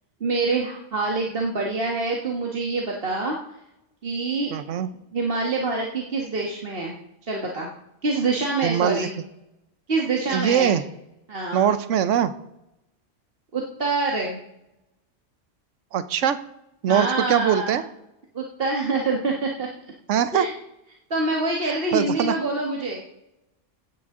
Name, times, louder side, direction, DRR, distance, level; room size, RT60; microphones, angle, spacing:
voice 1, 0.2-3.4 4.0-4.5 5.1-6.9 7.2-7.7 8.0-9.1 9.9-10.7 11.3-11.7 13.5-14.4 16.9-17.8 18.3-19.7 20.3-20.5 21.1-23.0, right 3 dB, 50° right, -1 dB, 1.7 m, -26 dB
voice 2, 4.5-4.9 8.6-9.1 10.3-10.8 11.5-12.3 15.9-16.4 16.8-17.8 20.1-20.5 21.7-22.3, right 9 dB, 80° right, 12 dB, 1.1 m, -22 dB
15.5 x 10.5 x 3.8 m, 0.87 s
omnidirectional pair, 1.3 m